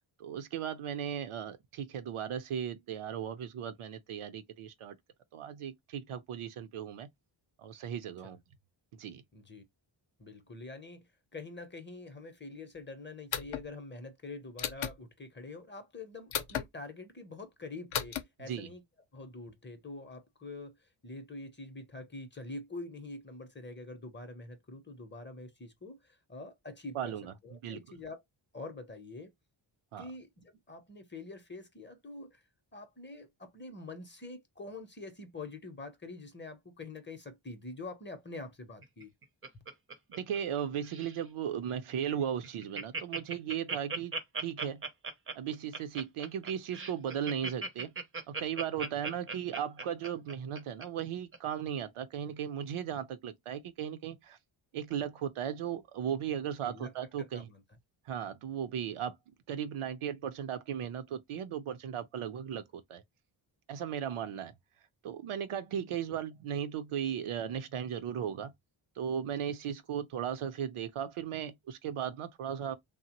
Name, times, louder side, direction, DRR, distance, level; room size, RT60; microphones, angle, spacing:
voice 1, 0.2-5.0 5.3-7.1 7.6-8.4 8.9-9.2 18.4-18.7 26.9-27.8 29.9-30.1 40.1-44.8 45.3-47.9 48.3-54.4 54.7-57.5 58.1-59.2 59.5-63.0 63.7-64.5 65.0-68.5 69.0-72.7, right 9 dB, 80° right, 0.6 m, -36 dB
voice 2, 9.3-9.6 10.2-18.8 19.1-20.7 21.0-27.1 27.4-28.2 28.5-29.3 30.0-32.4 32.7-39.1 56.6-56.9 57.2-57.6 66.1-66.2, left 2 dB, 25° left, 0.6 m, -45 dB
sound 1, 13.3-13.7 14.6-15.0 16.3-16.7 17.9-18.2, left 8 dB, 70° left, 0.6 m, -34 dB
Laughter, 38.8-40.6 40.8-41.2 41.7-41.8 42.1-42.2 42.4-50.8 51.3-51.4, right 4 dB, 30° right, 0.4 m, -38 dB
3.2 x 2.0 x 2.8 m
wide cardioid pair, 130°, 49 cm